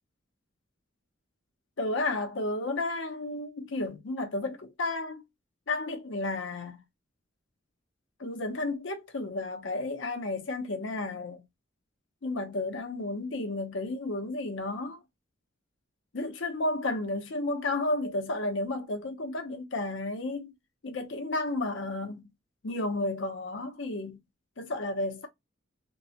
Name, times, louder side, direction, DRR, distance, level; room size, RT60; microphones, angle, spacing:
voice 1, 1.8-5.2 5.7-6.8 8.2-11.4 12.2-15.0 16.1-20.5 20.8-22.3 22.6-24.2 24.6-25.3, left 2 dB, 60° left, 0.6 m, -32 dB
2.9 x 2.1 x 2.7 m
head